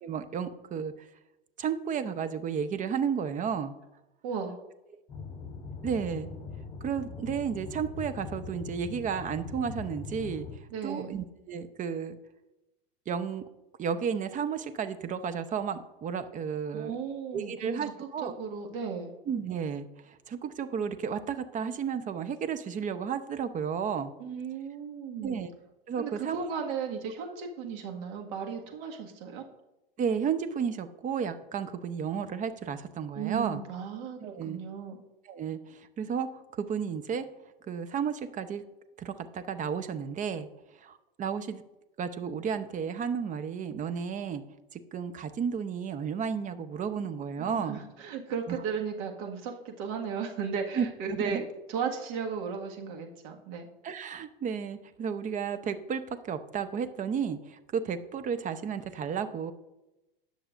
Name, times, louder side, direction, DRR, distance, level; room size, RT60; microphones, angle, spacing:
voice 1, 0.0-0.9 1.6-3.7 5.8-6.3 6.8-10.5 10.8-12.2 13.1-13.4 13.8-16.9 17.3-18.3 19.3-24.1 25.2-25.5 25.9-26.5 30.0-33.6 34.2-34.6 35.3-37.3 37.7-38.6 39.0-40.5 40.8-41.6 42.0-44.4 44.7-47.8 48.5-48.6 50.8-51.4 53.8-59.5, right 7 dB, 25° right, 10 dB, 0.8 m, -33 dB
voice 2, 4.2-4.6 10.7-11.1 16.7-19.1 24.2-25.4 26.0-29.4 33.2-35.0 47.4-53.7, right 6 dB, 55° right, 2 dB, 1.8 m, -35 dB
sound 1, 5.1-10.6, left 5 dB, 20° left, 3.8 m, -41 dB
18.5 x 6.5 x 2.6 m, 0.98 s
hypercardioid pair, 90°, 29 cm